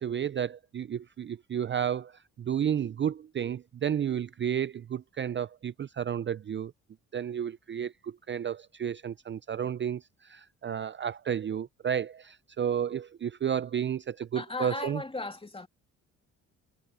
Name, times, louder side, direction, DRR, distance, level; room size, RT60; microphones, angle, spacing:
voice 1, 0.0-6.7 7.1-15.0, right 9 dB, 35° right, 0.5 m, -32 dB
voice 2, 14.3-15.7, left 2 dB, 15° left, 2.6 m, -36 dB
supercardioid pair, 70°, 33 cm